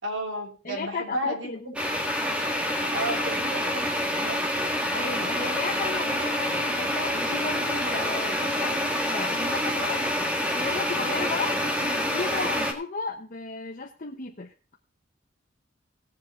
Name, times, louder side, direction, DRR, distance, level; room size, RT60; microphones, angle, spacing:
voice 1, 0.0-1.7 2.9-4.8, right 1 dB, 70° right, 2 dB, 3.0 m, -33 dB
voice 2, 0.6-1.7 4.9-14.5, left 3 dB, 45° left, 0 dB, 1.0 m, -34 dB
sound 1, 1.8-12.7, equal, 5° right, 1.8 m, -27 dB
17.5 x 7.4 x 3.8 m, 0.35 s
head